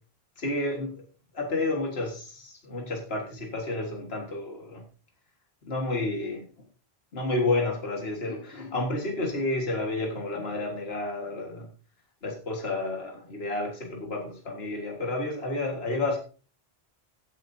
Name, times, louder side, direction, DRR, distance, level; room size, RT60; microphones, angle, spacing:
voice 1, 0.4-1.0 1.3-4.8 5.7-6.5 7.1-11.7 12.2-16.2, left 2 dB, 75° left, 1 dB, 2.0 m, -30 dB
15.5 x 9.2 x 2.7 m, 0.38 s
omnidirectional pair, 1.0 m